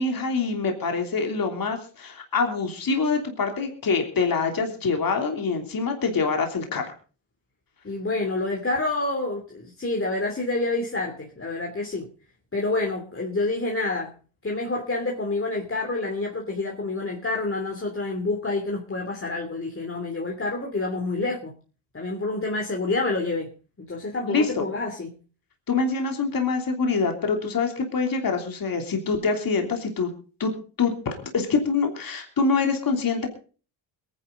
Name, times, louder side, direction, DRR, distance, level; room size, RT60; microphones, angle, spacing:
voice 1, 0.0-6.9 24.3-24.6 25.7-30.1 30.4-30.5 30.8-33.3, left 4 dB, 45° left, 4 dB, 3.2 m, -25 dB
voice 2, 7.8-12.1 12.5-14.1 14.4-21.5 21.9-23.5 23.8-25.1, left 2 dB, 25° left, 1 dB, 3.0 m, -28 dB
22.0 x 10.5 x 3.9 m, 0.37 s
supercardioid pair, 70°, 48 cm